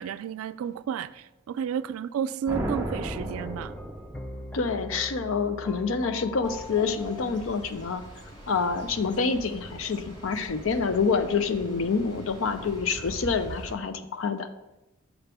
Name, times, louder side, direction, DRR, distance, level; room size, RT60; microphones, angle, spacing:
voice 1, 0.0-3.8, right 8 dB, 85° right, 0.3 m, -32 dB
sound 1, 2.5-4.6, right 1 dB, 15° right, 0.9 m, -33 dB
sound 2, 2.8-7.5, left 1 dB, 5° left, 0.3 m, -41 dB
voice 2, 4.5-8.0 8.5-14.5, left 5 dB, 65° left, 0.6 m, -27 dB
sound 3, 6.4-13.7, right 1 dB, 35° left, 2.0 m, -43 dB
7.1 x 3.4 x 5.8 m
head